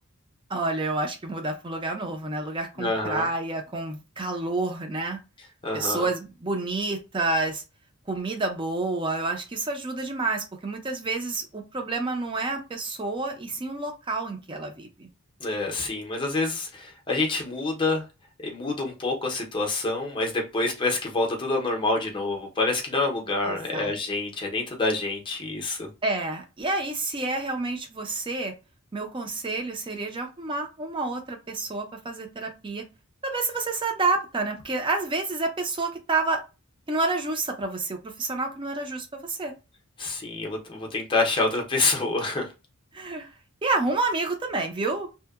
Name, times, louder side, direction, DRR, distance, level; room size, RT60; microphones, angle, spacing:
voice 1, 0.5-5.2 5.7-7.6 8.1-15.1 23.5-23.9 26.0-28.5 28.9-32.8 33.2-36.4 36.9-39.5 42.9-43.3 43.6-45.1, right 3 dB, 20° right, 0.5 m, -29 dB
voice 2, 2.8-3.3 5.6-6.1 15.4-18.1 18.4-25.9 40.0-42.5, left 3 dB, 20° left, 0.6 m, -27 dB
2.7 x 2.1 x 2.3 m
head